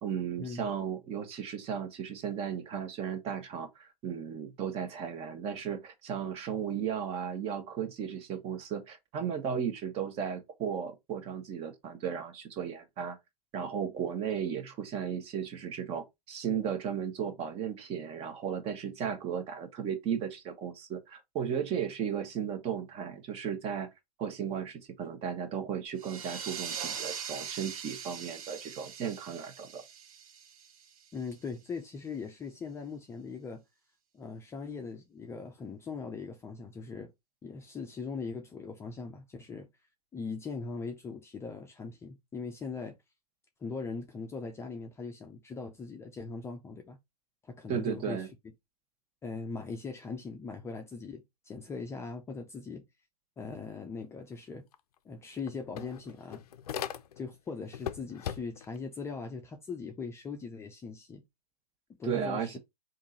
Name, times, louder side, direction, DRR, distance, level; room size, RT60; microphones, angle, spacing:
voice 1, 0.0-13.2 13.5-23.9 24.2-29.8 47.7-48.3 62.0-62.6, right 8 dB, 30° right, 1.1 m, -35 dB
sound 1, 26.0-31.3, right 7 dB, 65° right, 0.9 m, -41 dB
voice 2, 31.1-33.6 34.1-37.1 37.4-39.7 40.1-43.0 43.6-47.0 47.5-48.2 49.2-52.8 53.4-54.7 55.0-56.4 57.2-61.2 62.0-62.6, left 4 dB, 15° left, 0.5 m, -40 dB
sound 2, 54.7-54.8 55.1-57.4 57.7-58.8, left 9 dB, 75° left, 0.5 m, -39 dB
3.6 x 2.7 x 4.1 m
hypercardioid pair, 115°, 20 cm